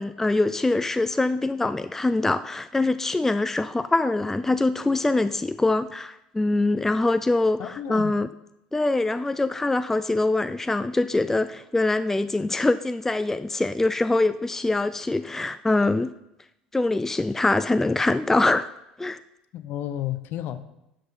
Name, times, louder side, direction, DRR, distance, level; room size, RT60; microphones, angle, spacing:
voice 1, 0.0-8.3 8.7-16.1 16.7-18.7 19.0-19.2, left 2 dB, 10° left, 14 dB, 0.4 m, -24 dB
voice 2, 7.6-8.2 19.5-20.6, left 11 dB, 50° left, 13 dB, 0.8 m, -32 dB
12.5 x 7.7 x 4.3 m, 0.87 s
figure-of-eight pair, 65°, 4 cm